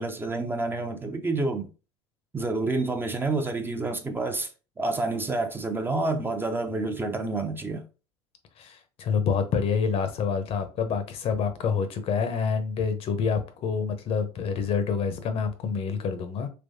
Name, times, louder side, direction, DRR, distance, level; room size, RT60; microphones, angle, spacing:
voice 1, 0.0-1.7 2.3-4.5 4.8-7.8, right 3 dB, 15° right, 0.6 m, -28 dB
voice 2, 8.6-16.5, left 6 dB, 45° left, 0.8 m, -27 dB
3.4 x 3.0 x 2.7 m
hypercardioid pair, 75°, 13 cm